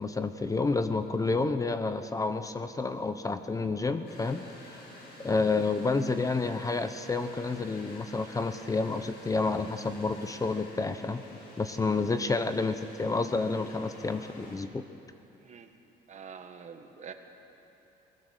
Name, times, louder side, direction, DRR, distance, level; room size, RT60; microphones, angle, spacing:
voice 1, 0.0-4.8 5.2-11.2 11.6-14.8, left 3 dB, 20° left, 10 dB, 0.8 m, -29 dB
sound 1, 4.0-14.6, left 1 dB, 90° left, 5.8 m, -50 dB
voice 2, 16.1-17.1, right 7 dB, 45° right, 6 dB, 1.6 m, -46 dB
22.0 x 19.5 x 6.7 m, 3.0 s
cardioid pair, 110°, 17 cm